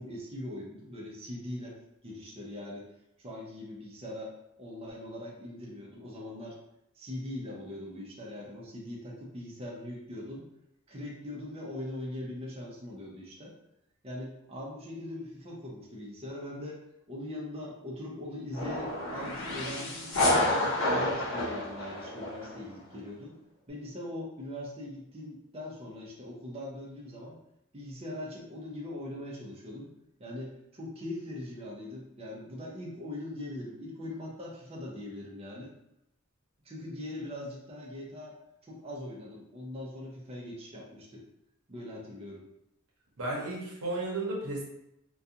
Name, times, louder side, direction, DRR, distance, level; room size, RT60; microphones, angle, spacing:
voice 1, 0.0-1.8 2.0-2.9 3.2-4.3 4.6-6.6 6.9-10.5 10.9-13.5 14.0-16.8 17.1-20.2 20.5-23.3 23.7-27.4 27.7-29.9 30.2-35.7 36.6-38.4 38.6-41.2 41.7-42.4, left 1 dB, 25° right, -3 dB, 0.5 m, -41 dB
sound 1, 18.5-22.6, left 1 dB, 60° left, 0.8 m, -29 dB
voice 2, 43.2-44.6, right 2 dB, 75° right, -3 dB, 0.8 m, -33 dB
2.4 x 2.3 x 2.7 m, 0.83 s
head